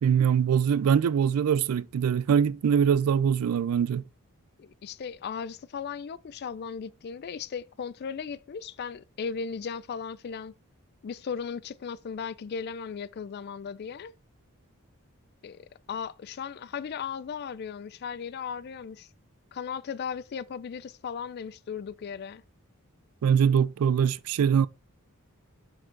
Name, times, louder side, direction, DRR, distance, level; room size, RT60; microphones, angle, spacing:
voice 1, 0.0-4.0 23.2-24.7, right 7 dB, 80° right, 0.3 m, -23 dB
voice 2, 4.6-10.5 11.0-14.1 15.4-19.1 19.5-22.4, left 6 dB, 45° left, 0.3 m, -36 dB
6.2 x 4.7 x 4.4 m
head